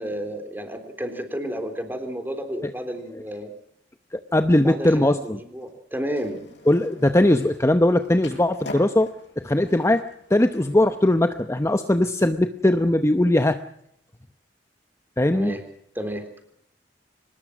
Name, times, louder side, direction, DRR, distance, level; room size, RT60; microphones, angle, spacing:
voice 1, 0.0-3.5 4.6-6.5 15.3-15.6 16.0-16.2, equal, 10° right, 6 dB, 3.8 m, -31 dB
voice 2, 4.1-5.4 6.7-9.1 9.4-10.0 10.3-13.6 15.2-15.6, left 1 dB, 15° left, 9 dB, 0.8 m, -20 dB
Skateboard, 6.1-11.4, left 2 dB, 70° left, 7.8 m, -44 dB
24.0 x 20.0 x 6.1 m, 0.74 s
head